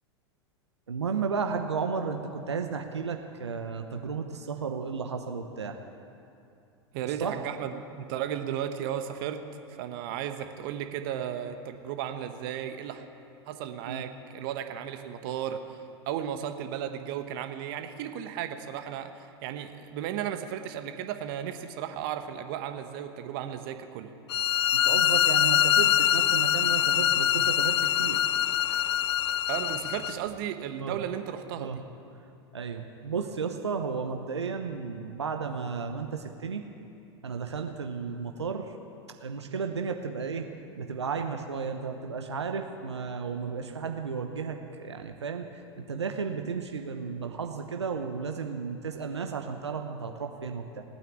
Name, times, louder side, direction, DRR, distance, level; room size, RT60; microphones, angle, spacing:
voice 1, 0.9-5.8 7.2-7.4 13.8-14.0 24.8-28.2 28.7-28.8 30.8-31.0 31.6-31.8 32.5-36.7 37.2-38.7 39.2-40.5 40.8-50.8, right 5 dB, 85° right, 4 dB, 1.0 m, -33 dB
voice 2, 6.9-9.4 9.8-13.0 13.5-15.8 16.1-24.1 29.5-31.8, right 10 dB, 55° right, 7 dB, 1.3 m, -35 dB
sound 1, 24.3-30.1, left 11 dB, 75° left, 0.4 m, -24 dB
18.5 x 9.1 x 8.6 m, 2.7 s
figure-of-eight pair, 90°, 14 cm